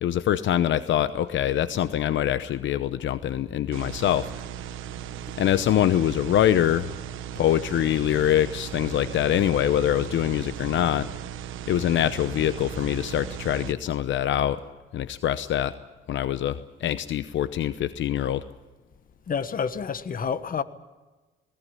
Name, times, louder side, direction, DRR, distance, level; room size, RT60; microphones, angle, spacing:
voice 1, 0.0-4.3 5.4-6.9 7.4-11.1 11.7-14.6 14.9-15.7 16.1-18.4, left 11 dB, 75° left, 0.9 m, -24 dB
sound 1, 3.7-13.7, right 10 dB, 85° right, 1.3 m, -37 dB
voice 2, 19.3-20.6, left 6 dB, 45° left, 1.5 m, -28 dB
20.0 x 19.5 x 9.9 m
cardioid pair, 90°, 20 cm